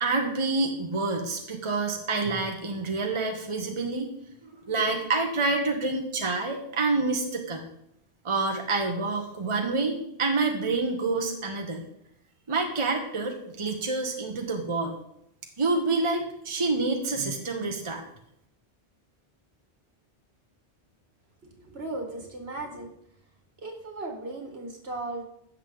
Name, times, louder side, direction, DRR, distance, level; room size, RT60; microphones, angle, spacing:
voice 1, 0.0-4.1 4.4-7.6 8.2-11.8 12.5-15.0 15.6-18.0, right 3 dB, 30° right, 3 dB, 1.1 m, -27 dB
voice 2, 21.4-22.9 23.6-25.2, right 2 dB, 65° right, 2 dB, 2.1 m, -36 dB
16.0 x 6.5 x 3.9 m, 0.77 s
omnidirectional pair, 1.1 m